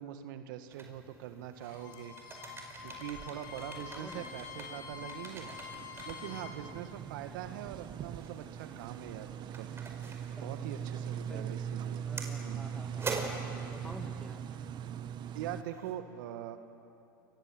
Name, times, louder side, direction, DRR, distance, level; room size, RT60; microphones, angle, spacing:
voice 1, 0.0-2.1 2.8-5.5 6.0-9.7 10.4-12.0 12.4-12.6 15.3-16.6, right 11 dB, 65° right, 9 dB, 1.8 m, -43 dB
sound 1, 0.7-15.9, right 4 dB, 20° right, 5.0 m, -46 dB
Bowed string instrument, 1.6-6.6, left 7 dB, 70° left, 4.8 m, -47 dB
sound 2, 2.8-15.6, right 8 dB, 40° right, 1.1 m, -41 dB
voice 2, 3.8-4.4 6.6-6.8 10.4-11.6 12.0-14.6, equal, ahead, 7 dB, 2.0 m, -51 dB
29.0 x 25.0 x 7.9 m, 2.8 s
hypercardioid pair, 90°, 11 cm